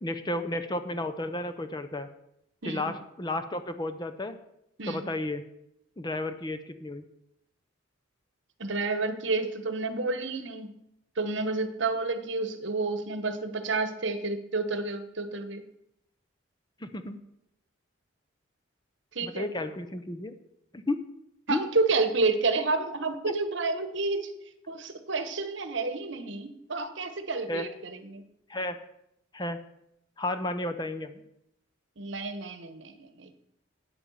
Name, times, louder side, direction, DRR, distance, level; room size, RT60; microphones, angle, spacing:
voice 1, 0.0-2.1 2.6-4.4 4.9-5.4 6.0-7.0 16.8-17.2 19.2-20.3 20.7-21.0 21.5-21.6 27.5-27.6 28.5-28.8 29.3-29.6 30.2-31.2, left 1 dB, 20° left, 10 dB, 0.7 m, -32 dB
voice 2, 8.6-10.8 11.2-15.6 19.1-19.5 21.5-24.3 24.7-28.2 32.0-33.3, right 3 dB, 65° right, 10 dB, 1.1 m, -30 dB
8.8 x 8.7 x 7.1 m, 0.79 s
head